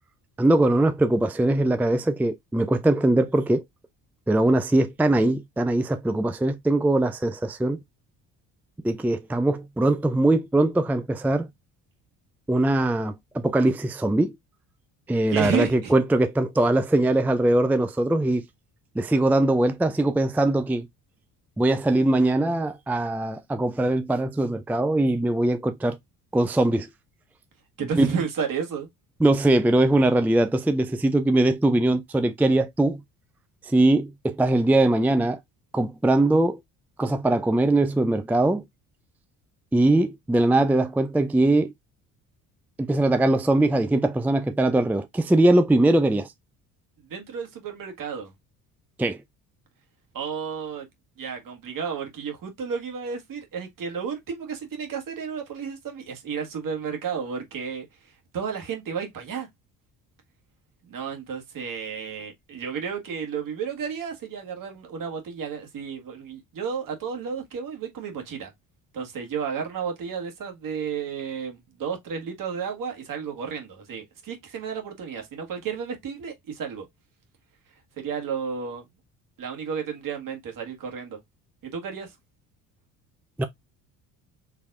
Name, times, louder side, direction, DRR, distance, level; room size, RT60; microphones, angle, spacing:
voice 1, 0.4-3.6 4.3-7.8 8.8-11.5 12.5-14.3 15.1-18.4 19.0-20.9 21.6-26.0 26.3-26.9 28.0-28.1 29.2-33.0 33.7-35.4 35.7-36.6 37.0-38.6 39.7-41.7 42.8-46.3 49.0-49.2 83.4-83.5, right 2 dB, 5° right, 0.5 m, -21 dB
voice 2, 15.3-15.9 27.8-28.9 47.0-48.3 50.1-50.9 51.2-59.5 60.9-68.5 68.9-76.9 78.0-78.9 79.4-81.2 81.6-82.2, right 6 dB, 55° right, 1.8 m, -32 dB
4.7 x 3.3 x 2.4 m
hypercardioid pair, 65°, 40 cm